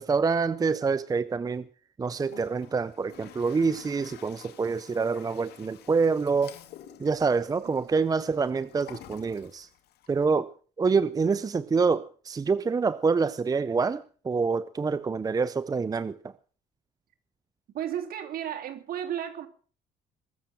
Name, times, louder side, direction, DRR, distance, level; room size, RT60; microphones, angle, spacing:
voice 1, 0.0-1.6 2.0-6.6 7.0-9.7 10.1-16.3, right 4 dB, 20° right, 0.6 m, -26 dB
Toilet flush, 2.1-10.3, left 12 dB, 75° left, 2.0 m, -51 dB
voice 2, 17.7-19.5, right 10 dB, 60° right, 3.0 m, -34 dB
22.0 x 7.3 x 7.5 m
cardioid pair, 110°, 17 cm